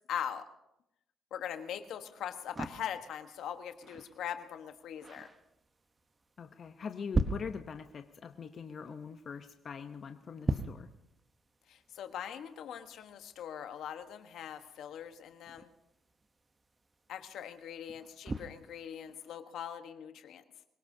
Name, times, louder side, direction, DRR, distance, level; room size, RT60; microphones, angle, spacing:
voice 1, 0.1-0.4 1.3-5.3 11.7-15.7 17.1-20.4, left 9 dB, 80° left, 7 dB, 1.2 m, -41 dB
sound 1, 1.4-19.4, right 2 dB, 25° right, 0.9 m, -42 dB
voice 2, 6.4-10.9, left 6 dB, 50° left, 7 dB, 0.8 m, -43 dB
25.0 x 17.0 x 2.8 m, 0.84 s
cardioid pair, 90°, 0 cm